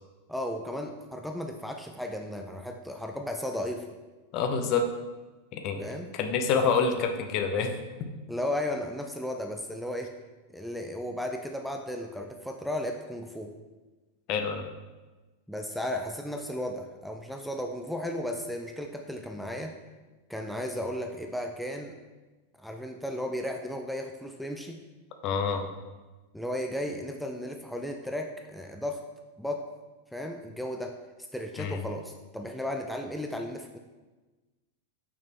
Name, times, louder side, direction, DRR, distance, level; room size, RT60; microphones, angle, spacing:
voice 1, 0.3-3.9 5.8-6.1 8.3-10.2 10.5-13.6 15.5-19.8 20.3-22.0 22.6-24.8 26.3-29.0 29.4-29.7 30.1-31.0 31.3-33.8, left 1 dB, ahead, 3 dB, 0.5 m, -35 dB
voice 2, 4.3-4.9 5.5-5.9 6.1-7.7 14.3-14.6 25.2-25.7 31.6-31.8, left 5 dB, 40° left, 6 dB, 0.8 m, -27 dB
6.1 x 5.9 x 4.4 m, 1.2 s
figure-of-eight pair, 90°, 0 cm